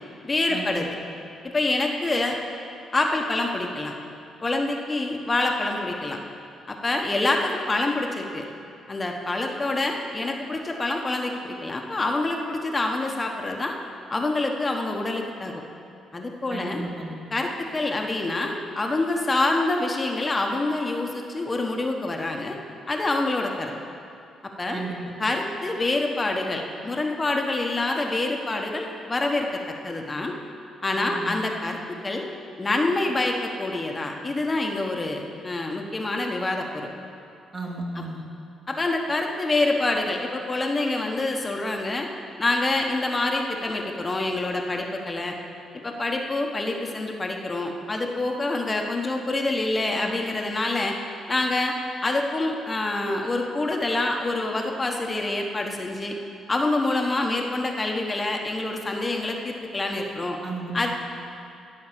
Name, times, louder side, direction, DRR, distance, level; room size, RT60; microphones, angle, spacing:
voice 1, 0.2-0.9 1.4-2.4 2.9-3.9 4.4-6.2 6.7-8.4 8.9-13.8 14.1-15.6 16.1-16.8 17.3-22.6 22.9-23.7 24.6-24.8 25.2-30.4 30.8-32.3 32.6-36.9 37.9-38.0 38.7-42.1 42.4-45.4 45.8-51.0 51.3-51.7 52.0-56.1 56.5-60.4 60.7-60.9, left 2 dB, 25° left, 2 dB, 1.2 m, -26 dB
voice 2, 16.5-17.2 24.7-25.0 31.1-31.3 37.5-38.2 60.4-60.9, right 2 dB, 35° right, -2 dB, 2.6 m, -33 dB
16.5 x 5.7 x 7.5 m, 2.5 s
cardioid pair, 90°, 0 cm